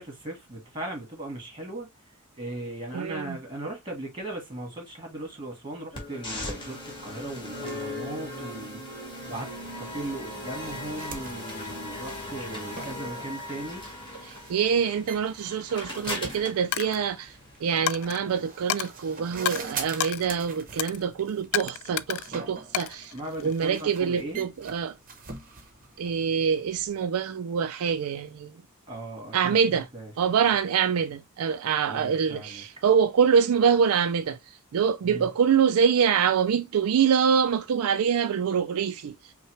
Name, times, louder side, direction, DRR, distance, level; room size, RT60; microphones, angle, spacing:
voice 1, 0.0-1.9 2.3-13.9 23.1-24.5 28.9-30.1 31.9-32.6 35.0-35.3, right 1 dB, 20° right, 1.7 m, -38 dB
voice 2, 2.9-3.4 14.5-23.1 23.4-25.0 26.0-28.5 29.3-29.9 30.2-39.3, right 7 dB, 80° right, 0.4 m, -25 dB
sound 1, 5.9-17.9, left 1 dB, 20° left, 1.7 m, -38 dB
sound 2, 10.6-27.1, right 4 dB, 40° right, 0.9 m, -44 dB
Coin (dropping), 16.7-17.0 17.9-18.2 18.7-18.9 19.5-19.6 20.0-20.2 20.8-21.0 21.5-22.3 22.7-23.7, left 13 dB, 75° left, 0.3 m, -30 dB
5.5 x 2.2 x 3.0 m
head